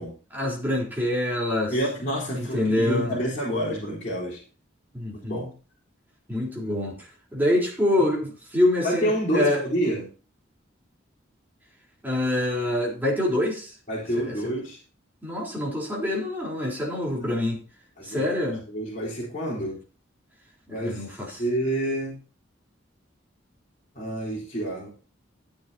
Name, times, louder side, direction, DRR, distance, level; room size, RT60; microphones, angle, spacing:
voice 1, 0.3-1.7 2.3-3.2 4.9-5.5 6.3-7.0 7.3-9.6 12.0-13.7 14.2-14.4 15.2-17.6 18.0-18.7 20.7-21.4, left 1 dB, 10° right, 3.8 m, -26 dB
voice 2, 1.7-4.4 5.1-5.5 8.8-10.1 13.9-14.8 17.1-17.3 18.0-18.2 18.7-19.8 20.7-21.0 21.4-22.2 23.9-24.9, right 1 dB, 40° left, 4.2 m, -28 dB
14.5 x 9.2 x 2.8 m
head